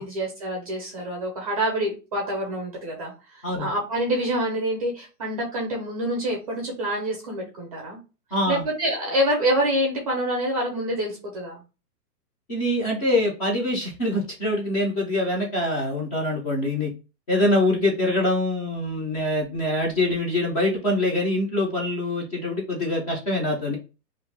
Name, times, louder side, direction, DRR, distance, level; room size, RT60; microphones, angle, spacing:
voice 1, 0.0-8.0 8.5-11.6, right 1 dB, 25° right, 0 dB, 0.5 m, -26 dB
voice 2, 8.3-8.6 12.5-16.9 17.3-23.8, left 1 dB, 25° left, -2 dB, 0.5 m, -24 dB
2.5 x 2.2 x 3.2 m, 0.31 s
hypercardioid pair, 150°, 49 cm